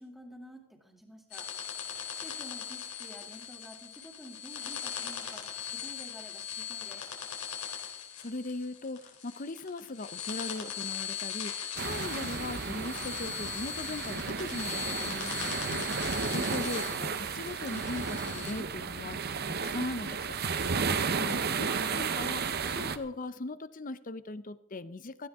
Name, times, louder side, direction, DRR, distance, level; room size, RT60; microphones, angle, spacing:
voice 1, 0.0-1.5 2.1-7.0, equal, ahead, 1 dB, 2.5 m, -50 dB
sound 1, 1.3-18.5, left 8 dB, 85° left, 3.5 m, -40 dB
voice 2, 8.2-19.2 19.5-20.4 21.2-21.7 21.9-25.3, left 2 dB, 40° left, 15 dB, 0.7 m, -39 dB
sound 2, 11.8-23.0, right 5 dB, 45° right, 0.8 m, -33 dB
17.0 x 15.5 x 3.6 m, 0.76 s
head